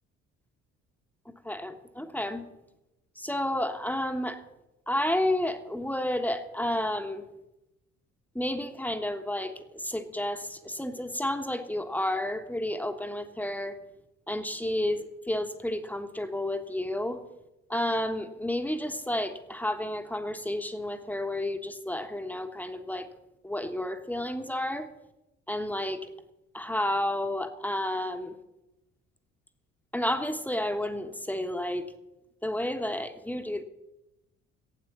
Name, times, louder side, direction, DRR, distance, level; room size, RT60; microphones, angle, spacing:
voice 1, 1.4-2.4 3.2-4.4 4.9-7.2 8.3-13.8 14.3-17.2 17.7-23.1 23.4-24.9 25.5-26.0 26.5-28.3 29.9-31.9 32.4-33.6, left 1 dB, 5° left, 7 dB, 1.3 m, -31 dB
12.5 x 8.8 x 6.9 m, 0.94 s
figure-of-eight pair, 50°, 38 cm